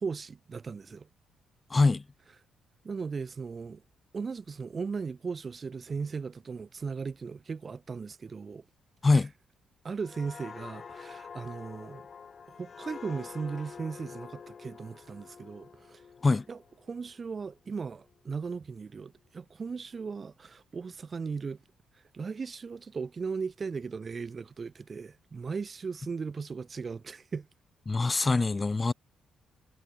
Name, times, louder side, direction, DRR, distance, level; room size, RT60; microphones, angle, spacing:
voice 1, 0.0-1.1 2.8-3.8 4.1-8.6 9.1-9.2 9.8-12.1 12.5-16.0 16.5-16.6 16.8-21.6 21.9-27.5, right 5 dB, 35° right, 0.3 m, -37 dB
voice 2, 1.7-2.0 9.0-9.3 16.2-16.4 27.9-28.9, left 3 dB, 25° left, 0.9 m, -24 dB
sound 1, 10.0-17.5 17.9-18.1, left 6 dB, 45° left, 3.8 m, -47 dB
cardioid pair, 90°, 0 cm